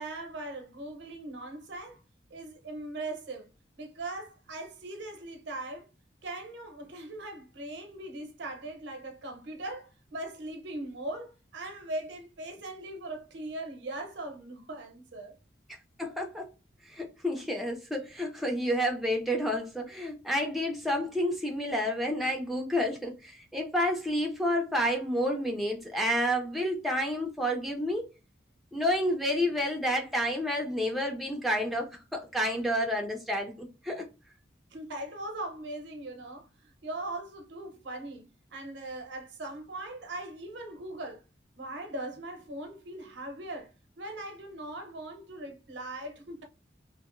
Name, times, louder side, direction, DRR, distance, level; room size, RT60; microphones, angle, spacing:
voice 1, 0.0-2.0 2.3-3.5 3.8-5.9 6.2-15.3 34.7-41.2 41.6-43.7 44.0-46.4, right 2 dB, 70° right, 0.7 m, -40 dB
voice 2, 16.0-16.5 16.9-28.1 28.7-34.1, equal, ahead, 0.3 m, -30 dB
2.8 x 2.5 x 2.4 m
head